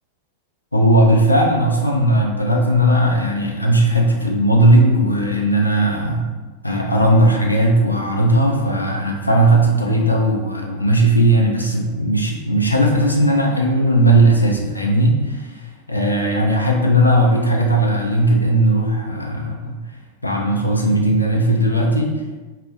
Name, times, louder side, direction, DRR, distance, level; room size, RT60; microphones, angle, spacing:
voice 1, 0.7-6.3 6.6-19.8 20.2-22.4, right 1 dB, 85° left, 0 dB, 0.4 m, -17 dB
2.3 x 2.0 x 2.6 m, 1.3 s
figure-of-eight pair, 90°, 0 cm